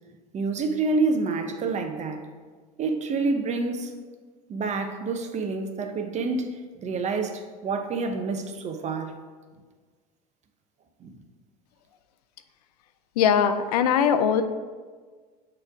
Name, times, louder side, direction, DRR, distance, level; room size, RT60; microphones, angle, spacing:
voice 1, 0.3-2.2 2.8-3.9 4.5-9.1 11.0-11.1, right 3 dB, 35° right, 0.7 m, -28 dB
voice 2, 13.2-14.4, left 8 dB, 85° left, 0.4 m, -21 dB
6.4 x 3.2 x 4.9 m
hypercardioid pair, 85°, 19 cm